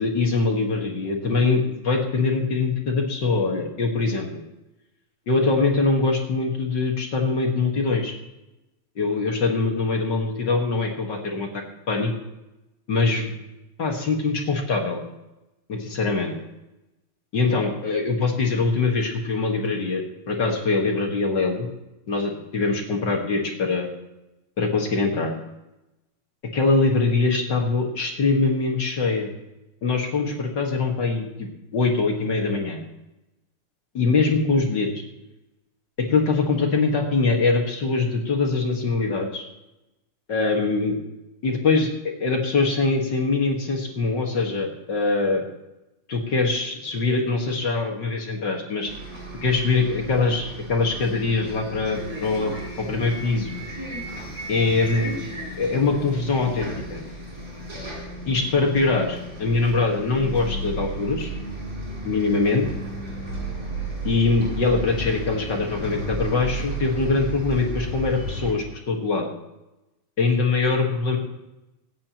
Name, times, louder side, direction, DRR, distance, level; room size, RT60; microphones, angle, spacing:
voice 1, 0.0-4.3 5.3-8.1 9.0-12.1 12.9-13.3 13.8-15.0 15.7-16.3 17.3-21.7 22.1-23.9 24.6-25.3 26.5-29.3 29.8-32.8 33.9-34.9 36.0-39.4 40.3-41.0 41.4-45.4 46.1-48.9 49.4-52.5 52.8-53.6 54.5-55.2 55.6-57.0 58.3-61.3 62.0-62.7 64.0-69.3 70.2-71.2, left 3 dB, 40° left, 1 dB, 2.0 m, -23 dB
Bus, 48.9-68.5, right 1 dB, 25° right, 6.3 m, -34 dB
25.5 x 8.8 x 3.0 m, 0.98 s
omnidirectional pair, 3.3 m